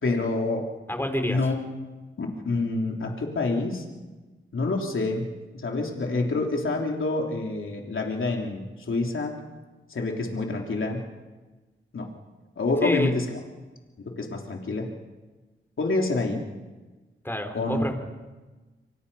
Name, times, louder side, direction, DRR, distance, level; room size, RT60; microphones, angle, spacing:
voice 1, 0.0-0.7 1.3-1.6 2.2-3.8 4.5-5.3 5.5-9.4 9.9-11.0 11.9-12.1 12.6-13.4 14.0-14.9 15.8-16.4 17.5-17.9, left 3 dB, 75° left, 1 dB, 3.3 m, -27 dB
voice 2, 0.9-1.4 12.8-13.1 17.2-17.9, left 1 dB, 10° left, 5 dB, 4.7 m, -27 dB
29.5 x 24.5 x 5.6 m, 1.2 s
cardioid pair, 55°, 21 cm